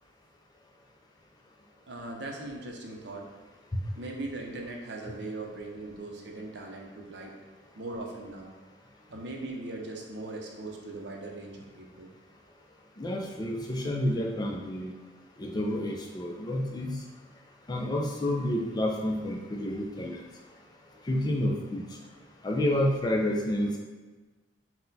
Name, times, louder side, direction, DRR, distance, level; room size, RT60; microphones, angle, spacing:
voice 1, 1.9-3.3 4.0-7.3 7.8-8.5 9.1-12.1, right 2 dB, 60° right, 0 dB, 0.6 m, -39 dB
voice 2, 13.0-14.9 15.4-17.0 17.7-20.2 21.1-21.8 22.4-23.8, left 1 dB, 20° left, 0 dB, 0.4 m, -29 dB
4.1 x 2.2 x 3.9 m, 1.3 s
head